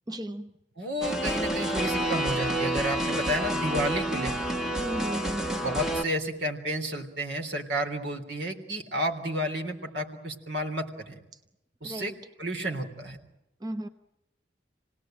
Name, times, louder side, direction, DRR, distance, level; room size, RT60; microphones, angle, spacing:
voice 1, 0.1-0.5 4.7-5.6 11.8-12.1 13.6-13.9, right 1 dB, 20° right, 7 dB, 0.9 m, -35 dB
voice 2, 0.8-4.5 5.6-11.2 11.8-12.1 12.4-13.2, equal, 75° right, 4 dB, 3.6 m, -31 dB
sound 1, 1.0-6.0, right 1 dB, 5° right, 1.3 m, -29 dB
28.0 x 18.5 x 9.1 m, 0.90 s
head